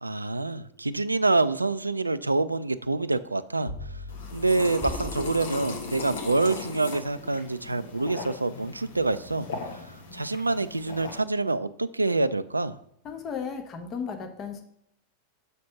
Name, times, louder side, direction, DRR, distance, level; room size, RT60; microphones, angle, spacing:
voice 1, 0.0-4.0 4.3-12.8, right 3 dB, 80° right, 14 dB, 0.4 m, -27 dB
Bowed string instrument, 3.6-10.1, left 2 dB, 80° left, 2.3 m, -46 dB
sound 1, 4.1-11.2, left 4 dB, 65° left, 1.4 m, -38 dB
Bass drum, 4.8-6.2, equal, 10° right, 0.5 m, -40 dB
voice 2, 13.0-14.6, left 6 dB, 30° left, 5 dB, 1.1 m, -35 dB
6.6 x 5.1 x 5.9 m, 0.72 s
figure-of-eight pair, 90°, 0 cm